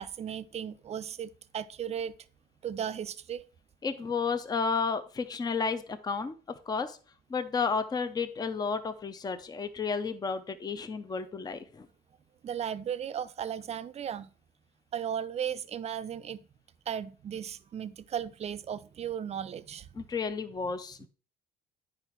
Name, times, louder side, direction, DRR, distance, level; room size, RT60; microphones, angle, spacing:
voice 1, 0.0-2.1 2.6-3.4 12.4-14.3 14.9-16.4 16.9-20.1, right 9 dB, 40° right, 0.5 m, -36 dB
voice 2, 3.8-6.3 6.7-7.0 7.3-11.9 20.0-21.1, left 5 dB, 25° left, 0.6 m, -32 dB
8.9 x 4.9 x 4.5 m
cardioid pair, 110°, 17 cm